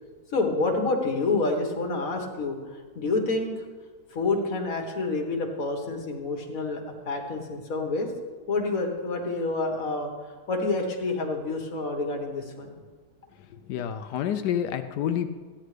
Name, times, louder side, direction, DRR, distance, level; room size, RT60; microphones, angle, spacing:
voice 1, 0.3-2.6 3.0-3.7 4.1-8.1 8.5-12.7, left 3 dB, 55° left, 2 dB, 1.8 m, -28 dB
voice 2, 13.7-15.3, left 9 dB, 85° left, 8 dB, 1.2 m, -28 dB
14.5 x 10.0 x 3.3 m, 1.5 s
omnidirectional pair, 1.7 m